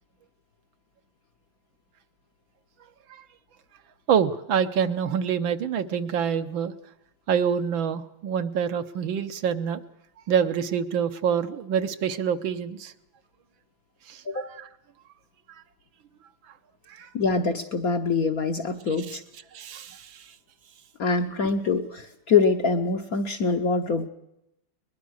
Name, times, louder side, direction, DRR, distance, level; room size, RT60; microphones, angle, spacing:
voice 1, 4.1-6.7 7.3-9.8 10.3-12.9 14.1-14.2 16.9-17.1 19.1-19.2 19.5-20.2, right 7 dB, 70° right, 9 dB, 1.7 m, -26 dB
voice 2, 17.1-19.2 21.0-24.1, left 4 dB, 55° left, 6 dB, 1.1 m, -24 dB
22.0 x 21.0 x 6.4 m, 0.83 s
omnidirectional pair, 2.4 m